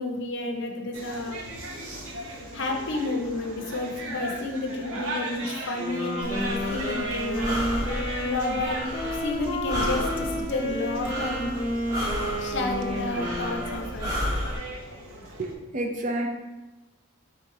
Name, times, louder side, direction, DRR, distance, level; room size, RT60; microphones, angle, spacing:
voice 1, 0.0-1.4 2.5-7.7 8.2-11.5 12.4-14.1, left 2 dB, 55° left, 3 dB, 0.6 m, -31 dB
Market in Montevideo, 0.9-15.5, right 1 dB, 70° right, 0.8 m, -38 dB
Wind instrument woodwind instrument, 5.8-14.4, equal, 20° left, 0.8 m, -32 dB
Breathing, 6.2-14.6, equal, 15° right, 1.0 m, -33 dB
voice 2, 15.4-16.3, right 1 dB, 35° right, 3 dB, 0.5 m, -29 dB
3.8 x 3.0 x 4.6 m, 1.0 s
head